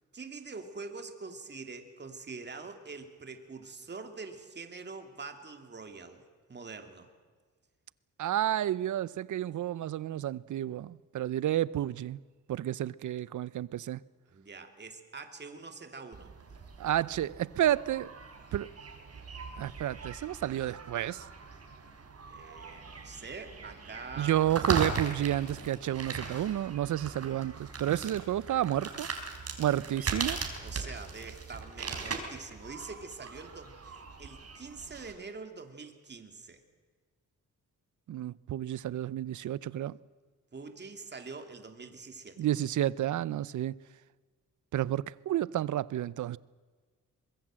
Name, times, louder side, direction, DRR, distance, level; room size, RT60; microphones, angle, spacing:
voice 1, 0.1-6.2 6.5-7.1 14.3-16.3 22.3-24.4 30.6-36.6 40.5-42.5, right 4 dB, 35° right, 2.7 m, -45 dB
voice 2, 8.2-12.2 12.5-14.0 16.8-18.1 18.5-18.7 19.6-21.3 24.2-29.1 29.6-30.4 38.1-40.0 42.4-43.8 44.7-46.4, right 12 dB, 70° right, 0.6 m, -31 dB
sound 1, 16.1-35.1, right 4 dB, 50° right, 4.2 m, -39 dB
24.0 x 21.5 x 7.6 m
cardioid pair, 100°, 31 cm